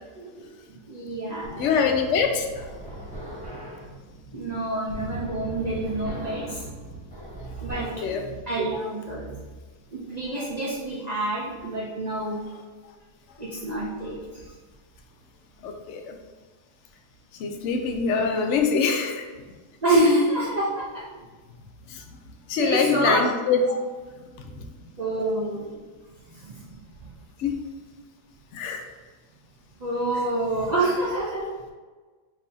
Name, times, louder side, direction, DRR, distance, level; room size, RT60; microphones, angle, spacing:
voice 1, 0.9-1.7 4.3-6.6 7.6-9.4 9.9-12.5 13.4-14.4 19.8-21.0 22.6-23.2 25.0-25.8 26.3-26.7 29.8-31.5, right 1 dB, 70° right, -6 dB, 0.4 m, -27 dB
sound 1, 1.4-8.2, equal, 5° left, 1.0 m, -39 dB
voice 2, 1.6-2.7 7.8-8.2 15.6-16.2 17.3-19.3 21.9-22.2 22.5-23.6 24.5-24.7 27.4-27.5 28.5-28.8 30.1-30.3, left 6 dB, 65° left, 4 dB, 0.8 m, -25 dB
4.1 x 2.7 x 4.1 m, 1.4 s
omnidirectional pair, 1.6 m